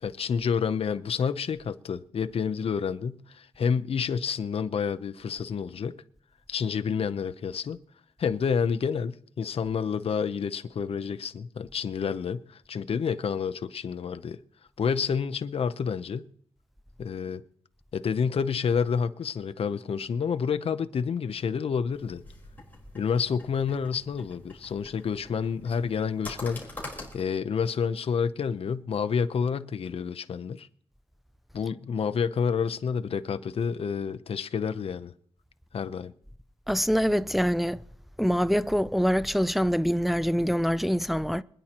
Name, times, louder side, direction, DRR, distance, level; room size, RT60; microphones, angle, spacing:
voice 1, 0.0-5.9 6.5-7.8 8.2-14.4 14.8-16.2 17.0-17.4 17.9-22.2 22.9-26.6 27.1-30.7 31.5-35.1 35.7-36.1, left 6 dB, 60° left, 0.7 m, -29 dB
sound 1, 21.9-27.2, left 2 dB, 15° left, 4.3 m, -45 dB
voice 2, 36.7-37.8 38.2-41.4, equal, ahead, 0.4 m, -25 dB
25.5 x 10.0 x 3.0 m
cardioid pair, 95°, 11 cm